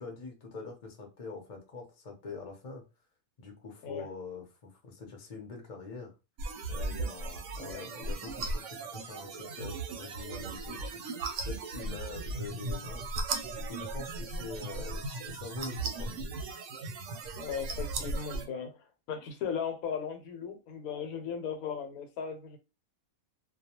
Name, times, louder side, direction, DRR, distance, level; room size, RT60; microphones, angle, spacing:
voice 1, 0.0-2.8 3.4-6.1 6.7-11.0 11.4-13.0 13.5-16.3, left 4 dB, 40° left, 0.6 m, -44 dB
sound 1, 6.4-18.5, right 3 dB, 70° right, 0.8 m, -37 dB
voice 2, 17.4-22.6, left 7 dB, 85° left, 1.1 m, -37 dB
2.3 x 2.2 x 2.8 m
omnidirectional pair, 1.5 m